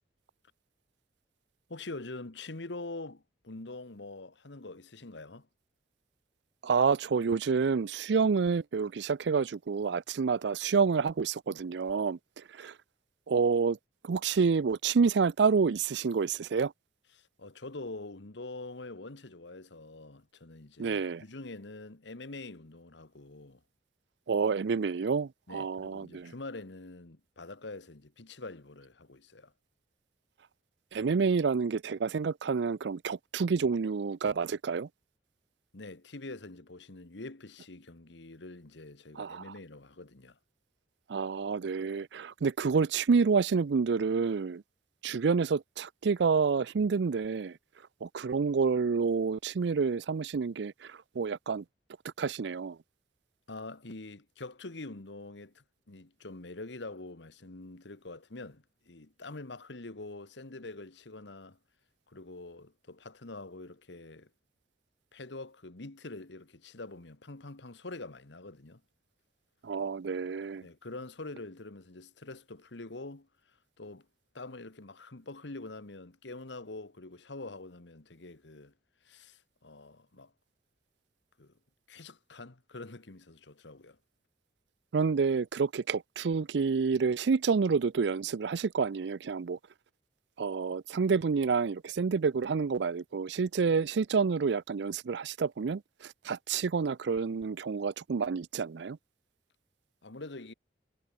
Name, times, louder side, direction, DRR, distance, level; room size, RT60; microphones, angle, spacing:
voice 1, 1.7-5.5 17.1-23.6 25.5-29.5 35.7-40.4 53.5-61.6 62.1-64.3 65.1-68.8 70.6-73.3 73.8-74.1 74.3-78.7 79.0-80.3 81.4-81.5 81.9-84.0 100.0-100.5, left 2 dB, 75° left, 1.5 m, -45 dB
voice 2, 6.6-12.8 13.3-13.8 14.0-16.7 20.8-21.2 24.3-26.3 30.9-34.9 39.2-39.5 41.1-44.6 45.0-47.6 48.0-51.6 52.2-52.8 69.6-70.6 84.9-89.6 90.4-99.0, right 5 dB, 70° right, 0.4 m, -28 dB
head